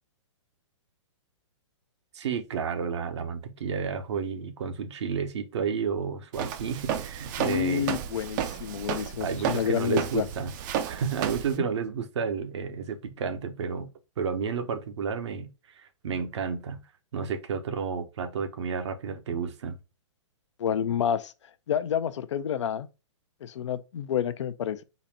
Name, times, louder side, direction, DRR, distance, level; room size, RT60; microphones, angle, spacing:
voice 1, 2.1-8.0 9.2-13.9 14.2-15.5 15.8-16.8 17.1-19.8, right 6 dB, 65° right, 0.8 m, -31 dB
Walk footsteps, 6.3-11.6, right 9 dB, 40° right, 0.5 m, -32 dB
voice 2, 7.4-10.3 11.6-11.7 20.6-21.3 21.7-22.9 23.4-24.8, left 9 dB, 70° left, 0.5 m, -29 dB
4.0 x 2.2 x 4.1 m
hypercardioid pair, 130°, 16 cm